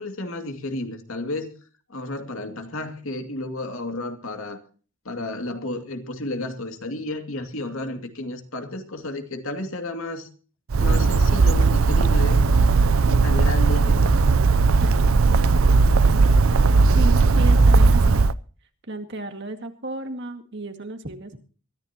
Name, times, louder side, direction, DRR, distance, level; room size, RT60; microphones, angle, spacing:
voice 1, 0.0-1.5 1.9-4.6 5.0-10.3 10.8-12.5 13.1-14.1, left 2 dB, 75° left, 6 dB, 2.5 m, -32 dB
Bird, 10.7-18.3, right 4 dB, 75° right, 0.6 m, -17 dB
voice 2, 17.0-18.2 18.9-21.4, right 1 dB, 55° right, 6 dB, 2.1 m, -33 dB
23.0 x 14.5 x 2.9 m, 0.38 s
head